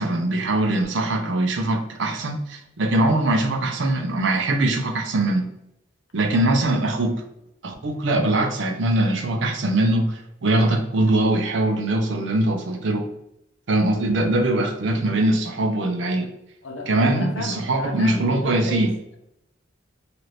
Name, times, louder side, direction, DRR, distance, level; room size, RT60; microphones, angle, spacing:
voice 1, 0.0-5.4 6.1-7.1 7.6-13.0 13.7-16.3 16.9-18.9, right 2 dB, 65° right, 4 dB, 0.5 m, -22 dB
voice 2, 16.6-19.2, left 2 dB, 70° left, 3 dB, 0.6 m, -32 dB
2.8 x 2.5 x 3.2 m, 0.83 s
head